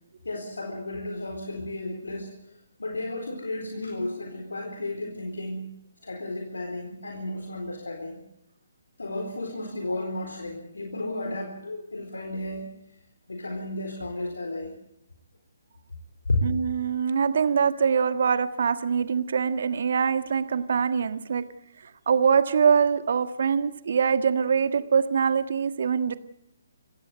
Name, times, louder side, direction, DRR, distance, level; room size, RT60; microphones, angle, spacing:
voice 1, 0.2-5.7 6.0-8.2 9.0-12.7 13.3-14.7 16.3-16.5, left 2 dB, 75° left, 2 dB, 4.0 m, -33 dB
voice 2, 16.4-21.4 22.1-26.2, right 6 dB, 55° right, 11 dB, 1.6 m, -23 dB
27.0 x 15.5 x 7.8 m, 0.81 s
figure-of-eight pair, 140°, 0 cm